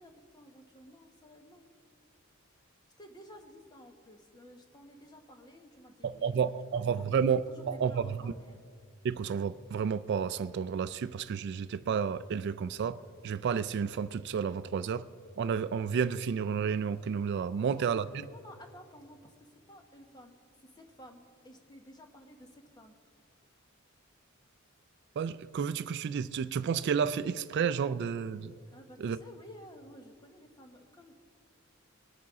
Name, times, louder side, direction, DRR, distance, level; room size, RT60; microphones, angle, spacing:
voice 1, 0.0-1.7 3.0-6.6 6.9-8.6 17.5-23.0 28.7-31.1, equal, 20° left, 4 dB, 1.1 m, -53 dB
voice 2, 6.0-7.4 7.7-8.3 9.0-13.0 13.2-15.0 15.4-18.1 25.2-28.5 29.0-29.2, right 6 dB, 55° right, 14 dB, 0.3 m, -31 dB
20.5 x 8.7 x 3.7 m, 2.3 s
head